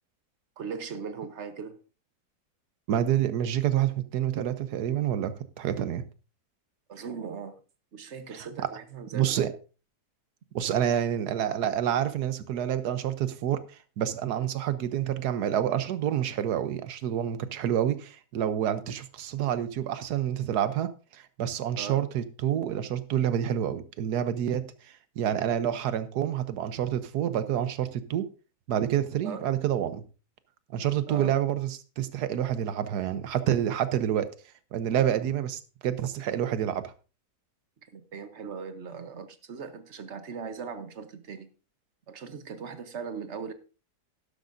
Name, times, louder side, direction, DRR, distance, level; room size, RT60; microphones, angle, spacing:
voice 1, 0.6-1.8 6.9-7.6 7.9-9.5 21.8-22.0 29.2-29.5 31.1-31.4 37.9-41.5 42.1-43.5, right 6 dB, 50° right, 1.1 m, -39 dB
voice 2, 2.9-6.0 9.1-9.5 10.5-13.6 14.0-28.2 28.7-30.0 30.7-34.3 34.7-36.9, right 10 dB, 75° right, 1.3 m, -28 dB
12.0 x 11.5 x 2.6 m
omnidirectional pair, 1.7 m